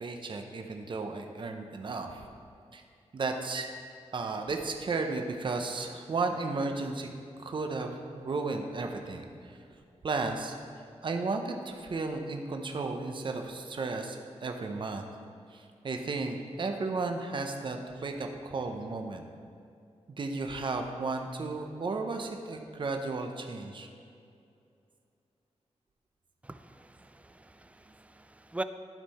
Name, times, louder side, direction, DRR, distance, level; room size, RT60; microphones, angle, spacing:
voice 1, 0.0-2.3 2.7-2.8 3.1-3.7 4.1-7.1 7.4-9.6 10.0-10.6 11.0-15.1 15.5-19.2 20.1-23.9, right 3 dB, 45° right, 4 dB, 0.7 m, -34 dB
voice 2, 26.4-28.6, right 2 dB, 10° right, 10 dB, 0.3 m, -42 dB
12.0 x 5.6 x 4.2 m, 2.5 s
wide cardioid pair, 120°, 12 cm